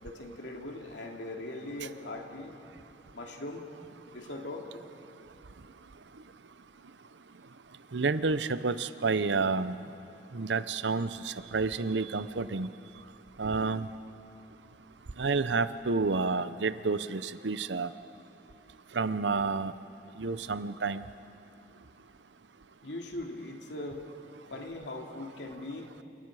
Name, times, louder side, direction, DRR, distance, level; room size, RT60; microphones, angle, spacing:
voice 1, 0.0-2.5 3.1-3.6 4.1-4.8 22.8-24.0 24.5-25.9, left 2 dB, 90° left, 1 dB, 2.6 m, -40 dB
voice 2, 7.9-9.8 10.3-12.7 13.4-13.9 15.2-17.9 19.0-19.7 20.2-21.0, right 4 dB, 85° right, 13 dB, 0.8 m, -29 dB
28.5 x 28.5 x 4.9 m, 3.0 s
head